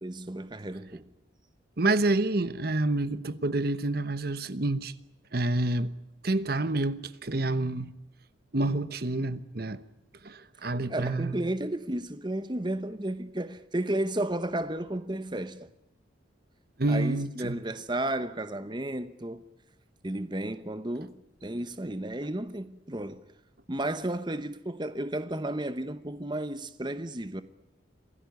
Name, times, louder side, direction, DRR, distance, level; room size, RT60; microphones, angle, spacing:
voice 1, 0.0-1.1 10.9-15.7 16.9-19.4 20.0-21.1 21.4-23.2 23.7-27.4, right 1 dB, 25° right, 1.0 m, -33 dB
voice 2, 1.8-4.9 5.3-5.9 6.2-7.9 8.5-9.8 10.2-11.4 16.8-17.6, right 2 dB, 50° right, 1.0 m, -28 dB
26.5 x 17.0 x 9.4 m
head